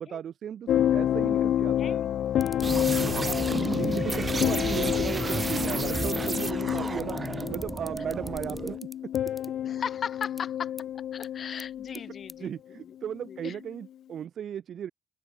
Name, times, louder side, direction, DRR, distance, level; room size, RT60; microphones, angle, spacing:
voice 1, 0.0-2.0 3.6-7.2 7.5-8.8 9.0-9.1 11.9-12.1 12.4-14.9, right 9 dB, 65° right, 2.4 m, -36 dB
sound 1, 0.7-12.4 13.3-13.6, left 11 dB, 70° left, 0.7 m, -29 dB
voice 2, 1.8-2.1 2.7-3.4 9.7-10.7 11.1-12.6 12.9-13.0 13.3-13.6, left 7 dB, 50° left, 2.3 m, -38 dB
sound 2, 2.4-2.8 3.5-4.4 5.3-9.5 10.2-10.4 10.8-10.9 11.2-11.3 11.6-12.0 12.3-12.4, left 1 dB, 5° left, 5.3 m, -44 dB
sound 3, 2.6-8.8, right 4 dB, 30° right, 1.6 m, -32 dB
open air
cardioid pair, 90°, 0 cm